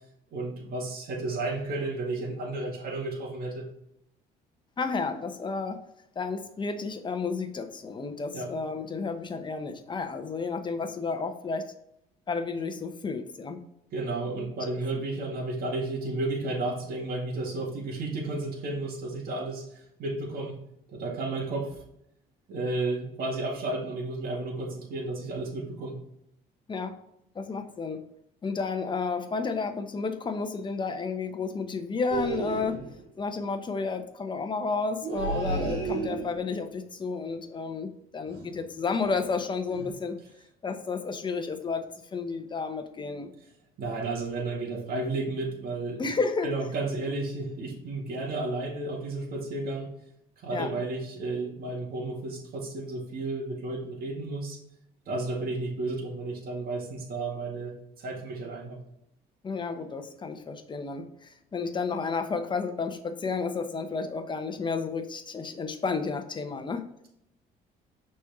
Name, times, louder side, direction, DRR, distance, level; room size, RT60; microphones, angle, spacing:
voice 1, 0.3-3.7 8.3-8.5 13.9-20.6 20.9-21.8 22.5-26.0 43.8-46.1 46.4-49.9 50.4-54.6 55.1-57.7 58.0-58.8, right 2 dB, 60° right, -1 dB, 2.1 m, -32 dB
voice 2, 4.8-5.8 6.2-11.7 12.3-13.6 26.7-27.0 27.3-28.0 28.4-32.8 33.2-40.2 40.6-43.3 46.0-46.5 50.5-50.7 59.4-66.8, left 4 dB, 30° left, 7 dB, 0.9 m, -31 dB
sound 1, 32.1-33.0 35.0-36.6 38.3-38.6 39.0-39.3 39.7-39.9, right 3 dB, 80° right, 2.3 m, -32 dB
6.2 x 4.3 x 3.5 m, 0.79 s
cardioid pair, 110°, 17 cm